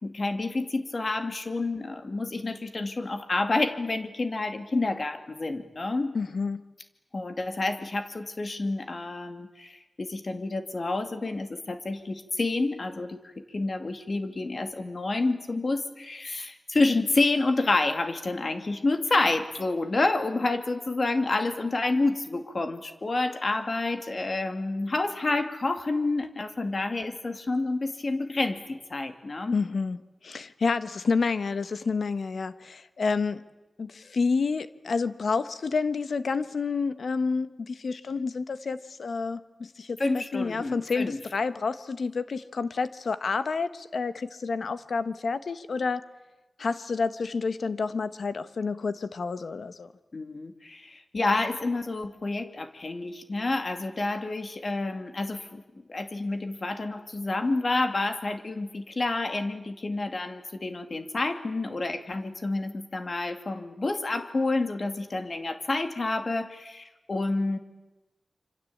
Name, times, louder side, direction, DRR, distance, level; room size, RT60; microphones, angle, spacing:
voice 1, 0.0-6.1 7.1-13.2 13.5-29.6 40.0-41.2 50.1-55.6 55.9-67.6, left 2 dB, 45° left, 8 dB, 2.4 m, -29 dB
voice 2, 6.1-6.6 29.5-30.0 30.2-33.4 33.8-46.0 46.6-49.9, left 4 dB, 80° left, 13 dB, 1.3 m, -29 dB
27.0 x 25.5 x 8.7 m, 1.0 s
wide cardioid pair, 105°, 0 cm